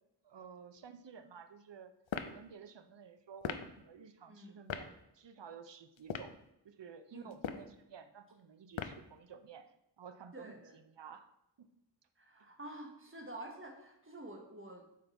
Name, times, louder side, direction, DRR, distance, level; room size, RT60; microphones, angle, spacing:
voice 1, 0.2-1.9 2.3-6.4 6.6-11.3 11.6-11.7, right 7 dB, 65° right, 9 dB, 0.7 m, -53 dB
sound 1, 2.1-2.4 3.4-3.7 4.7-4.9 6.0-6.4 7.3-7.7 8.7-9.1, left 7 dB, 80° left, 0.6 m, -39 dB
voice 2, 4.3-4.6 7.1-7.3 10.3-10.8 12.2-14.8, right 1 dB, 25° right, 2 dB, 1.4 m, -49 dB
6.6 x 5.2 x 4.3 m, 0.83 s
wide cardioid pair, 75°, 46 cm